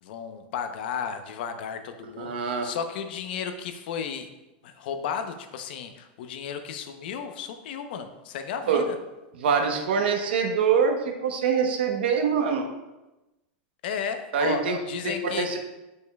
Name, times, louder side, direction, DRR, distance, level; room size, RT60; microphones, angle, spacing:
voice 1, 0.0-4.3 4.6-9.0 13.8-15.6, left 7 dB, 65° left, 7 dB, 0.8 m, -34 dB
voice 2, 2.0-2.6 8.7-8.8 9.4-12.7 14.3-14.8 15.0-15.6, right 6 dB, 85° right, 4 dB, 1.1 m, -24 dB
10.5 x 5.4 x 2.3 m, 1.0 s
supercardioid pair, 150°, 5 cm